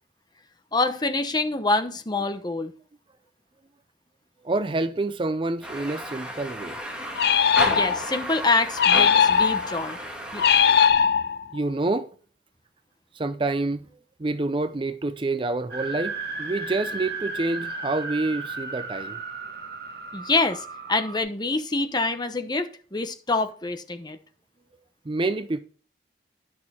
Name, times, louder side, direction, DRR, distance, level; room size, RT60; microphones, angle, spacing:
voice 1, 0.7-2.7 7.7-10.0 10.3-10.4 20.1-24.2, left 3 dB, 25° left, 0.9 m, -26 dB
voice 2, 4.4-6.8 11.5-12.1 13.2-13.9 14.2-19.2 25.1-25.6, right 2 dB, 30° right, 0.5 m, -27 dB
sound 1, 5.6-10.9, right 1 dB, 5° right, 2.1 m, -33 dB
sound 2, 7.2-8.2 8.8-9.8 10.4-11.6, left 7 dB, 60° left, 0.5 m, -19 dB
sound 3, 15.7-21.2, right 3 dB, 60° right, 1.7 m, -34 dB
10.5 x 6.4 x 4.3 m
head